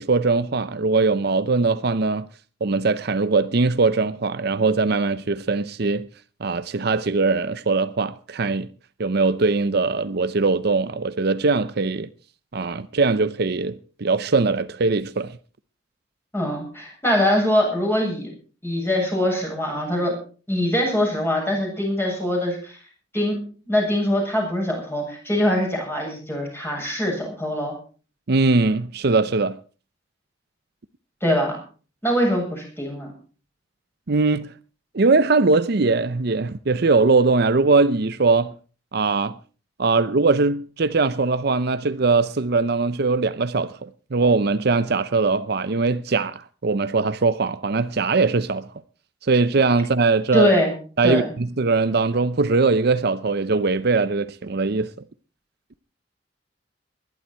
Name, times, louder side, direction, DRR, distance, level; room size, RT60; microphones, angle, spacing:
voice 1, 0.0-2.3 2.6-6.1 6.4-8.7 9.0-12.1 12.5-15.3 28.3-29.6 34.1-34.5 34.9-38.5 38.9-39.4 39.8-48.7 49.3-50.5 51.0-54.9, right 3 dB, 55° right, 0.7 m, -21 dB
voice 2, 16.3-18.3 18.6-20.2 20.5-22.8 23.1-23.4 23.7-27.8 31.2-31.6 32.0-33.1 50.3-50.7 51.0-51.3, left 1 dB, 10° left, 7.7 m, -23 dB
21.0 x 12.0 x 4.5 m
head